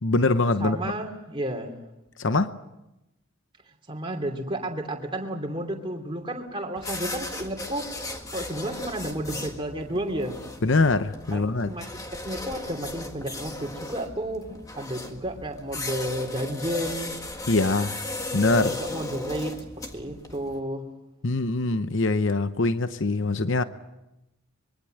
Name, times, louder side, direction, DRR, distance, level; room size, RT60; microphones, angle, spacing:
voice 1, 0.0-0.8 2.2-2.5 10.6-11.7 17.5-18.0 18.3-18.7 21.2-23.6, left 3 dB, 55° left, 0.8 m, -23 dB
voice 2, 0.6-1.8 3.9-7.9 8.3-10.4 11.3-17.1 18.5-19.5 19.9-20.9, right 1 dB, 25° right, 2.8 m, -32 dB
sound 1, 6.7-20.6, left 2 dB, 15° left, 1.7 m, -36 dB
25.0 x 23.0 x 7.8 m
head